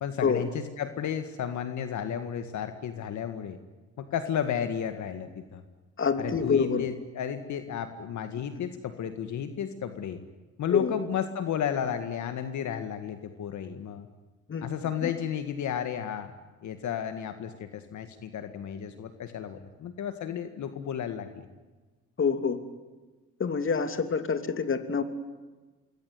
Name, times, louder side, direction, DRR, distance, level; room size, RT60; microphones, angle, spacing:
voice 1, 0.0-3.6 4.0-5.6 6.2-10.2 10.6-14.1 14.6-16.3 16.6-21.5, left 8 dB, 70° left, 9 dB, 1.9 m, -33 dB
voice 2, 6.0-6.9 10.7-10.9 14.5-14.7 15.0-15.1 22.2-22.6 23.4-25.0, left 5 dB, 45° left, 9 dB, 2.9 m, -26 dB
26.0 x 21.0 x 9.6 m, 1.3 s
cardioid pair, 90°, 30 cm